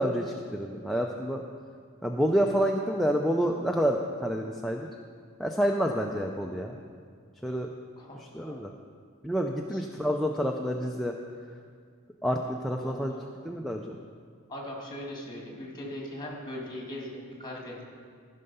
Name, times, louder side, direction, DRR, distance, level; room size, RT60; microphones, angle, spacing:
voice 1, 0.0-1.4 2.0-4.9 5.4-6.8 7.4-7.7 8.2-8.7 9.2-11.1 12.2-13.1 13.4-14.0, equal, ahead, 1 dB, 0.4 m, -28 dB
voice 2, 8.0-8.6 9.7-9.8 12.8-13.3 14.5-17.9, left 1 dB, 20° left, -1 dB, 2.0 m, -40 dB
14.5 x 5.5 x 5.4 m, 2.1 s
head